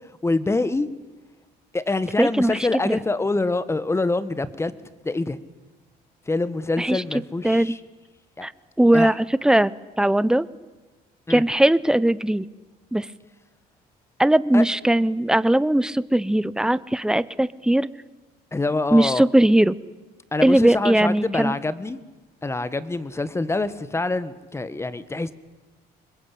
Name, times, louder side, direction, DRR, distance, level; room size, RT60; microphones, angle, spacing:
voice 1, 0.2-0.9 1.7-4.7 5.0-5.4 6.3-7.8 8.4-8.5 8.9-9.1 11.3-11.4 14.5-14.6 18.5-19.2 20.3-22.0 22.4-25.3, left 2 dB, 15° left, 15 dB, 1.5 m, -25 dB
voice 2, 2.2-3.0 6.8-7.0 7.4-7.7 8.4-8.5 8.8-9.7 10.0-10.5 11.3-12.5 12.9-13.1 14.2-17.9 18.9-19.8 20.4-21.5, right 1 dB, 5° right, 17 dB, 0.8 m, -19 dB
26.0 x 21.5 x 8.6 m, 1.2 s
cardioid pair, 110°, 17 cm